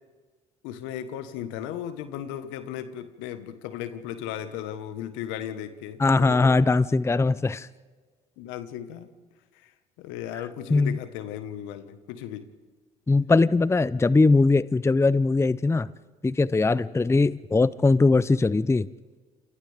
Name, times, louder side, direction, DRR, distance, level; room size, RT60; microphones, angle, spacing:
voice 1, 0.6-6.7 8.4-9.1 9.5-9.7 10.0-12.5, left 10 dB, 75° left, 11 dB, 1.6 m, -36 dB
voice 2, 6.0-7.7 10.7-11.0 13.1-15.9 16.2-18.9, left 3 dB, 15° left, 19 dB, 0.6 m, -21 dB
28.5 x 28.0 x 3.6 m, 1.4 s
hypercardioid pair, 55°, 20 cm